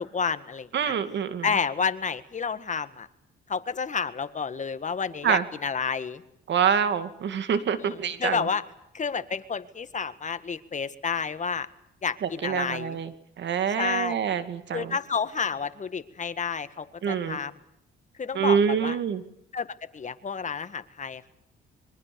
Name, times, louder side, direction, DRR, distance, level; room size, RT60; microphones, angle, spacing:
voice 1, 0.0-1.0 1.4-3.1 3.5-6.2 7.8-8.6 8.9-11.7 12.0-13.0 13.8-14.1 14.7-17.5 18.2-19.0 19.5-19.7 19.9-21.3, left 6 dB, 40° left, 12 dB, 1.8 m, -30 dB
voice 2, 0.7-1.5 5.2-5.4 6.5-8.5 12.2-13.1 13.4-15.0 17.0-17.4 18.3-19.2, right 7 dB, 65° right, 11 dB, 2.4 m, -26 dB
26.0 x 23.5 x 7.0 m, 0.78 s
cardioid pair, 90°, 20 cm